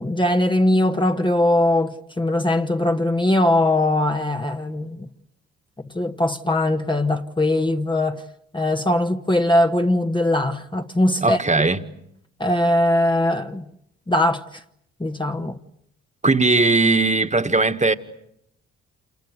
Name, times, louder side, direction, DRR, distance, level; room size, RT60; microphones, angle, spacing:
voice 1, 0.0-5.1 5.9-8.2 8.5-11.4 12.4-13.6 14.1-14.4 15.0-15.6, left 1 dB, 15° left, 1.4 m, -20 dB
voice 2, 11.2-11.8 16.2-17.9, right 3 dB, 20° right, 1.9 m, -18 dB
28.0 x 25.0 x 8.3 m
supercardioid pair, 55°, 32 cm